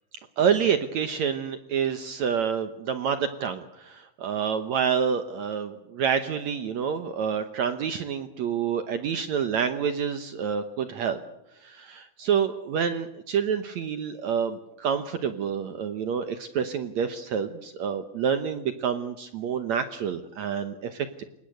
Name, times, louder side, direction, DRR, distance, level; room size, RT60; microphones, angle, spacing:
voice 1, 0.4-11.2 11.6-21.2, right 7 dB, 70° right, 9 dB, 1.8 m, -28 dB
29.0 x 17.5 x 8.0 m, 0.82 s
omnidirectional pair, 4.5 m